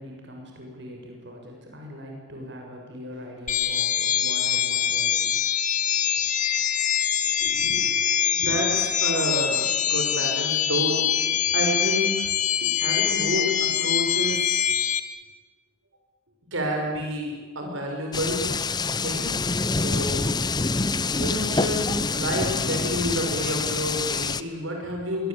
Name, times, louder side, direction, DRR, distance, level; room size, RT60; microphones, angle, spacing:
voice 1, 0.0-5.4, equal, 60° right, 0 dB, 7.2 m, -41 dB
sound 1, 3.5-15.0, left 9 dB, 40° left, 1.8 m, -24 dB
voice 2, 7.4-12.3 12.6-14.7 16.5-18.5 19.0-19.3 19.7-20.3 21.1-25.3, equal, 85° right, 1 dB, 6.7 m, -29 dB
sound 2, 18.1-24.4, left 4 dB, 20° left, 0.8 m, -26 dB
25.5 x 23.0 x 8.9 m, 1.3 s
head